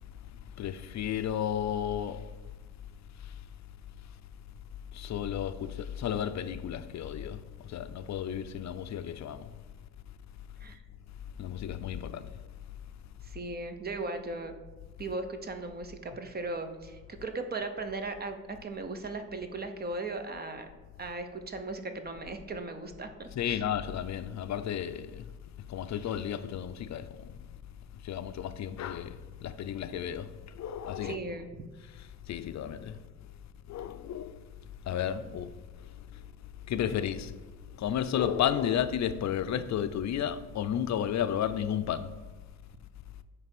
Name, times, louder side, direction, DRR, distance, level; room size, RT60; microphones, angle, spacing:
voice 1, 0.6-2.3 4.9-7.4 7.7-9.4 11.4-12.3 23.4-25.2 25.7-27.3 28.0-31.2 32.0-33.0 33.7-34.4 34.9-35.5 36.7-37.3 37.8-42.1, left 9 dB, 60° left, 0.4 m, -33 dB
voice 2, 13.2-14.5 15.0-20.7 21.0-23.6 31.0-31.5, right 3 dB, 30° right, 0.7 m, -37 dB
8.8 x 3.3 x 5.9 m
wide cardioid pair, 150°, 32 cm